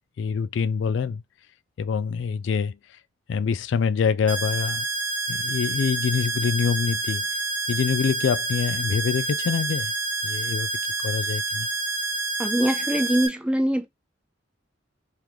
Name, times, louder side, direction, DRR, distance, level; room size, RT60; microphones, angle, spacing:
voice 1, 0.2-1.2 1.8-2.8 3.3-4.9 5.3-7.3 7.7-9.9 10.2-10.7 11.0-11.7, left 6 dB, 70° left, 0.3 m, -25 dB
sound 1, 4.3-13.3, right 2 dB, 40° right, 1.1 m, -28 dB
voice 2, 12.4-13.9, right 1 dB, 5° right, 0.5 m, -23 dB
3.3 x 3.0 x 3.6 m
head